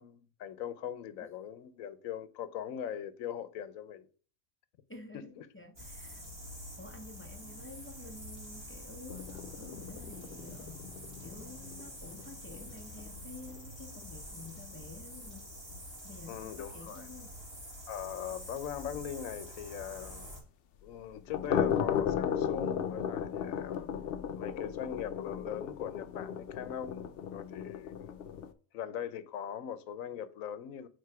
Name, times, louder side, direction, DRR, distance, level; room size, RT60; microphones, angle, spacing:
voice 1, 0.0-4.1 5.1-5.5 16.3-17.1 17.9-20.3 20.8-23.9 24.4-28.1 28.7-30.9, left 9 dB, 85° left, 1.1 m, -41 dB
voice 2, 4.9-6.2 6.8-10.8 11.2-15.5 16.0-17.3, left 2 dB, 15° left, 0.5 m, -50 dB
sound 1, 5.8-20.4, equal, 20° right, 1.6 m, -47 dB
sound 2, 9.1-15.0 15.2-15.4 15.8-15.9 16.2-16.3 16.7-16.8 19.6-19.7 21.1-28.5, left 8 dB, 60° left, 0.7 m, -36 dB
4.7 x 4.4 x 4.6 m
omnidirectional pair, 1.4 m